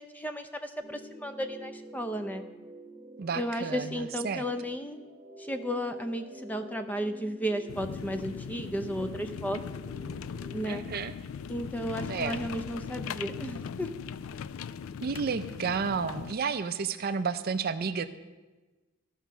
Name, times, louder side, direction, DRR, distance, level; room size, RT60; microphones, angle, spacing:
voice 1, 0.0-2.4 3.3-5.0 5.4-9.6 10.5-10.9 11.5-13.9, equal, 10° left, 8 dB, 0.5 m, -34 dB
sound 1, 0.8-10.7, right 2 dB, 25° right, 1.2 m, -48 dB
voice 2, 3.2-4.4 10.7-11.1 12.1-12.4 15.0-18.1, right 5 dB, 45° right, 11 dB, 0.4 m, -31 dB
sound 2, 7.7-16.3, left 7 dB, 70° left, 0.3 m, -39 dB
12.5 x 5.6 x 6.0 m, 1.2 s
head